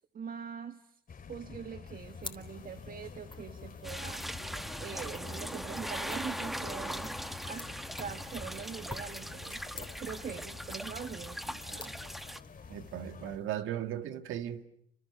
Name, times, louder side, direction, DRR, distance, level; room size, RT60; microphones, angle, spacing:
voice 1, 0.1-1.0 1.3-7.2 7.5-12.0, right 6 dB, 45° right, 1.3 m, -43 dB
sound 1, 1.1-13.4, left 6 dB, 45° left, 2.6 m, -48 dB
sound 2, 1.9-13.5, left 3 dB, 25° left, 3.3 m, -52 dB
sound 3, 3.8-12.4, equal, ahead, 1.0 m, -40 dB
voice 2, 12.7-14.8, right 11 dB, 90° right, 1.8 m, -37 dB
29.0 x 27.0 x 7.0 m
cardioid pair, 90°, 20 cm